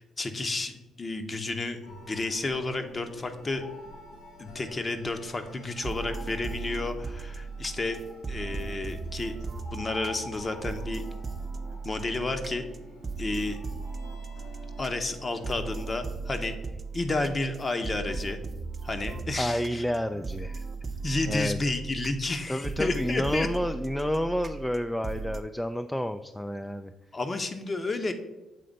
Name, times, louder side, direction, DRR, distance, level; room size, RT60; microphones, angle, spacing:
voice 1, 0.0-3.6 4.4-8.0 8.3-9.4 9.7-11.0 11.8-12.6 13.2-13.6 14.8-16.5 16.9-18.4 18.8-19.8 20.1-20.2 21.0-23.5 27.1-28.1, left 2 dB, 35° left, 7 dB, 0.9 m, -31 dB
sound 1, 1.8-15.9, left 1 dB, 85° left, 1.2 m, -48 dB
sound 2, 5.7-25.4, right 4 dB, 35° right, 0.7 m, -37 dB
voice 2, 19.4-20.5 21.3-21.6 22.5-26.9, left 1 dB, 5° left, 8 dB, 0.3 m, -30 dB
7.6 x 3.3 x 5.2 m, 1.0 s
supercardioid pair, 65°, 0 cm